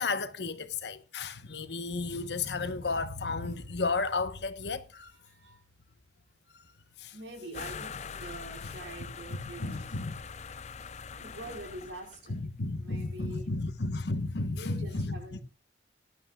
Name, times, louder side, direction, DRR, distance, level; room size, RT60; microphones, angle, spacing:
voice 1, 0.0-5.1 7.0-7.1 9.6-10.1 12.3-15.2, left 3 dB, 70° left, 1.0 m, -33 dB
voice 2, 5.1-5.6 7.1-10.0 11.2-12.3 12.8-13.5 14.5-15.4, right 1 dB, 80° right, 4.7 m, -45 dB
sound 1, 7.5-12.4, left 6 dB, 40° left, 0.5 m, -43 dB
19.0 x 11.5 x 2.3 m
head